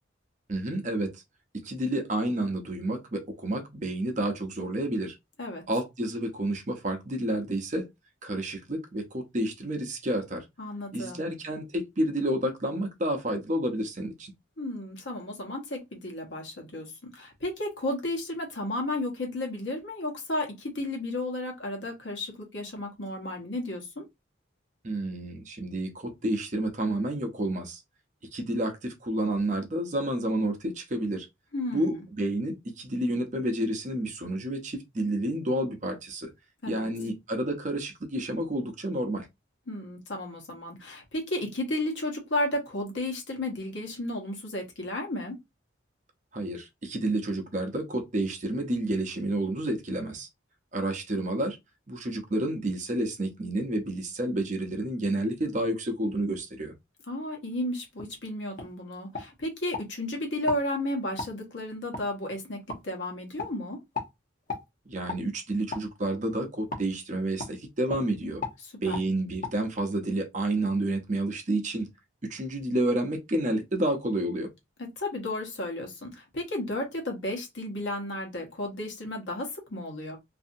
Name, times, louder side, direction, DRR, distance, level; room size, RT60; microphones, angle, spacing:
voice 1, 0.5-1.2 1.5-5.2 5.7-7.9 8.2-10.5 10.9-14.3 24.8-27.8 28.3-31.3 31.7-36.3 36.7-39.3 46.3-50.3 50.7-51.6 51.9-56.7 64.9-68.4 68.8-71.9 72.2-74.5, right 1 dB, 35° right, 0.6 m, -30 dB
voice 2, 10.6-11.3 14.6-24.0 31.5-32.0 36.6-36.8 39.7-45.4 57.1-63.8 68.6-69.0 74.8-80.2, left 1 dB, 65° left, 1.1 m, -33 dB
sound 1, 58.0-58.1 58.6-58.7 59.1-59.9 60.4-60.6 61.2-61.3 61.9-62.1 62.7-62.8 63.4-63.5 63.9-64.1 64.5-64.7 65.1-65.2 65.7-65.9 66.7-66.9 67.4-67.5 67.9-68.0 68.4-68.6 68.9-69.1 69.4-69.5, left 3 dB, 40° left, 0.8 m, -35 dB
2.6 x 2.6 x 2.6 m
head